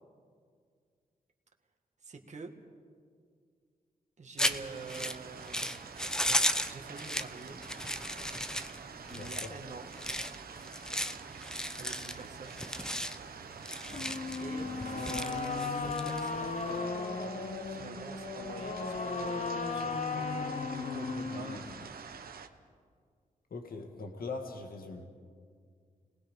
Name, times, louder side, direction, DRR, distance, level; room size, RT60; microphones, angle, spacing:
voice 1, 2.0-2.5 4.2-5.7 6.7-7.6 9.1-9.9 11.8-12.6 14.4-22.0, right 4 dB, 50° right, 3 dB, 2.0 m, -47 dB
sound 1, 4.4-16.7, equal, 5° left, 0.8 m, -35 dB
sound 2, 4.5-22.5, right 6 dB, 85° right, 1.2 m, -47 dB
voice 2, 9.1-9.5 23.5-25.1, left 3 dB, 80° left, 3 dB, 1.9 m, -41 dB
sound 3, 13.9-21.9, left 4 dB, 50° left, 1.2 m, -36 dB
30.0 x 19.5 x 5.5 m, 2.1 s
wide cardioid pair, 120°, 15 cm